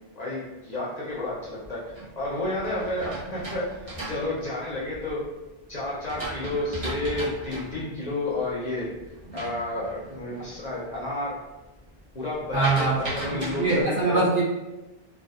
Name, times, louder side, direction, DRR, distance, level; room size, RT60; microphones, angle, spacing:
voice 1, 0.1-1.8 2.2-3.7 4.0-5.2 5.7-8.9 9.3-11.3 12.1-14.2, left 2 dB, 50° left, -7 dB, 0.7 m, -30 dB
sound 1, 1.4-5.2 5.7-10.6 10.9-11.3 11.6-13.8, right 1 dB, 40° right, 0.6 m, -37 dB
voice 2, 12.5-13.0 13.4-14.4, right 3 dB, 55° right, -8 dB, 1.2 m, -23 dB
2.7 x 2.3 x 2.3 m, 1.1 s
omnidirectional pair, 1.0 m